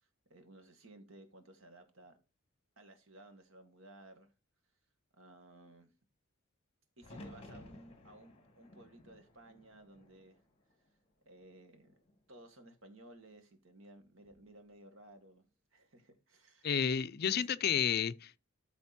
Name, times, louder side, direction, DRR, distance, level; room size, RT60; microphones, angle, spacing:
voice 1, 0.0-2.2 2.8-4.3 5.1-5.9 7.0-10.4 11.3-12.0 12.3-16.7 17.3-17.4, right 1 dB, 70° right, 1.9 m, -57 dB
sound 1, 7.0-11.0 11.4-12.2 14.0-14.5, left 1 dB, 30° left, 2.3 m, -55 dB
voice 2, 16.6-18.4, left 8 dB, 50° left, 0.5 m, -31 dB
13.0 x 4.3 x 4.3 m
head